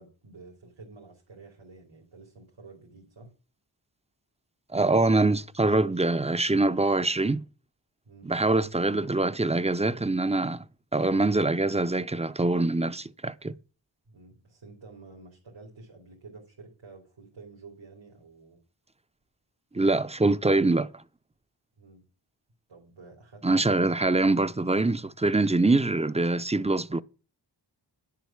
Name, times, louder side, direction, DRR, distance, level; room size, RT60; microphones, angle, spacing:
voice 1, 0.0-3.3 8.0-8.3 14.1-18.6 19.7-20.0 21.8-22.0 22.7-23.6, right 3 dB, 90° right, 3.1 m, -50 dB
voice 2, 4.7-7.4 8.2-10.6 10.9-13.6 19.7-20.9 23.4-27.0, right 2 dB, 15° right, 0.6 m, -24 dB
10.5 x 7.5 x 7.1 m
wide cardioid pair, 65°, 45 cm